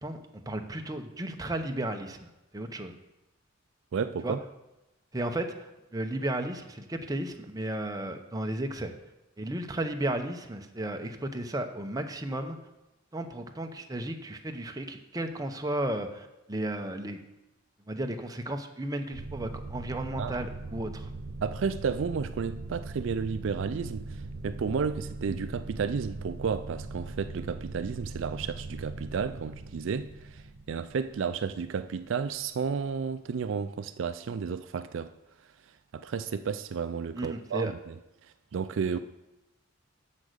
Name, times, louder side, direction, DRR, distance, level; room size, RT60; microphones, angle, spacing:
voice 1, 0.0-2.9 4.2-4.4 5.1-8.9 9.4-12.6 13.1-17.2 17.9-21.1 37.2-37.7, right 1 dB, 20° right, 0.7 m, -34 dB
voice 2, 3.9-4.4 20.2-20.4 21.4-35.1 35.9-37.9 38.5-39.0, right 6 dB, 65° right, 0.4 m, -32 dB
sound 1, 19.1-32.4, right 3 dB, 85° right, 0.7 m, -40 dB
8.4 x 6.3 x 6.5 m
head